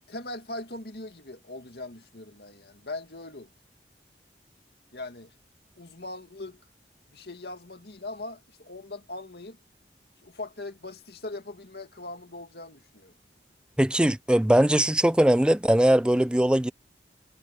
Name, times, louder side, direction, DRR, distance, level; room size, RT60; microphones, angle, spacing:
voice 1, 0.1-3.5 4.9-5.3 5.8-6.6 7.1-9.6 10.2-13.1, left 2 dB, 65° left, 2.3 m, -40 dB
voice 2, 13.8-16.7, right 1 dB, 5° right, 0.4 m, -20 dB
head